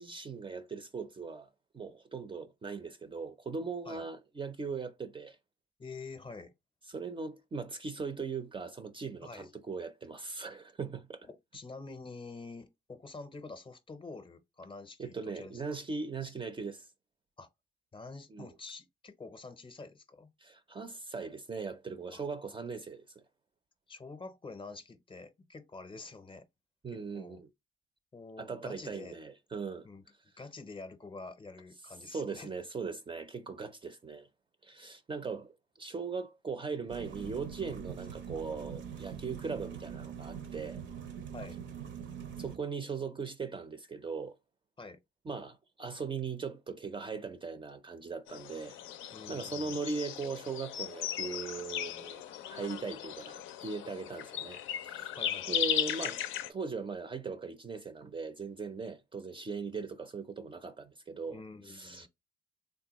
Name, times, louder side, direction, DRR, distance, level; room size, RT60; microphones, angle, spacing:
voice 1, 0.0-5.4 6.9-11.3 15.0-16.9 18.3-18.5 20.4-23.2 26.8-27.5 28.4-29.9 32.1-34.3 34.6-40.8 42.4-44.4 45.3-48.8 49.1-52.2 52.5-55.2 55.5-56.2 56.5-62.1, right 4 dB, 25° right, 0.4 m, -39 dB
voice 2, 5.8-6.5 9.2-9.5 11.3-15.6 16.2-16.3 17.4-17.5 17.9-20.3 22.1-22.2 23.9-26.5 26.9-27.4 28.1-29.2 29.8-30.0 30.4-32.5 41.3-41.6 44.8-45.0 49.1-49.8 55.1-55.6 61.3-62.1, left 3 dB, 25° left, 0.6 m, -47 dB
sound 1, 36.9-42.6, right 7 dB, 70° right, 0.6 m, -43 dB
sound 2, 48.3-56.5, left 10 dB, 90° left, 0.4 m, -37 dB
3.6 x 2.2 x 2.9 m
cardioid pair, 90°, 20 cm